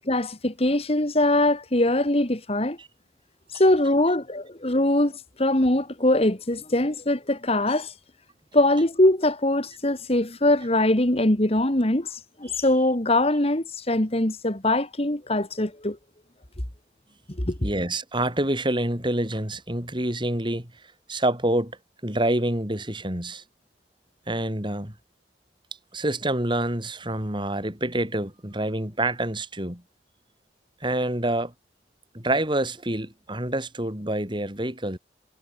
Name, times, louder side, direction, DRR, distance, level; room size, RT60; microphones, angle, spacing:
voice 1, 0.1-2.8 3.5-7.9 8.5-16.0 17.4-17.6, left 1 dB, 35° left, 2.2 m, -22 dB
voice 2, 17.6-20.7 21.1-21.7 22.0-23.4 24.3-24.9 25.9-29.8 30.8-31.5 32.1-35.0, right 1 dB, 25° right, 6.5 m, -27 dB
head